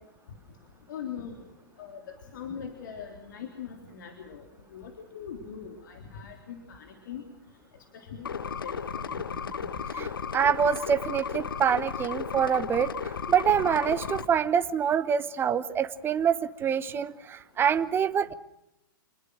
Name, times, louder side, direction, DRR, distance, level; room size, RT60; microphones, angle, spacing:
voice 1, 0.9-1.3 1.8-4.4 4.7-7.3 7.9-9.2 13.5-13.6, left 7 dB, 65° left, 4 dB, 3.7 m, -41 dB
sound 1, 8.2-14.3, left 6 dB, 80° left, 1.4 m, -34 dB
voice 2, 9.9-18.3, right 8 dB, 20° right, 12 dB, 1.1 m, -26 dB
27.0 x 21.0 x 6.3 m, 0.86 s
hypercardioid pair, 110°, 11 cm